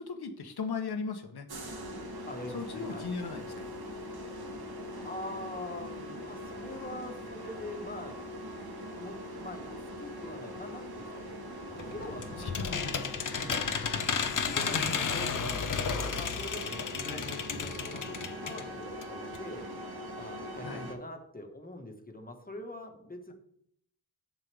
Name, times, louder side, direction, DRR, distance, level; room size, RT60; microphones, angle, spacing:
voice 1, 0.0-1.5 2.5-3.7 12.4-12.9 14.5-15.1 17.0-17.3 20.6-20.9, left 4 dB, 90° left, 7 dB, 1.1 m, -38 dB
sound 1, 1.5-20.9, equal, 90° right, 1.6 m, -42 dB
voice 2, 2.3-3.1 5.0-8.2 8.9-11.4 11.8-19.7 20.2-23.3, left 1 dB, 25° left, 4 dB, 1.4 m, -44 dB
sound 2, 11.8-18.7 19.0-19.1 19.3-19.4, left 6 dB, 55° left, 0.7 m, -33 dB
10.5 x 7.5 x 3.5 m, 0.72 s
wide cardioid pair, 85°, 37 cm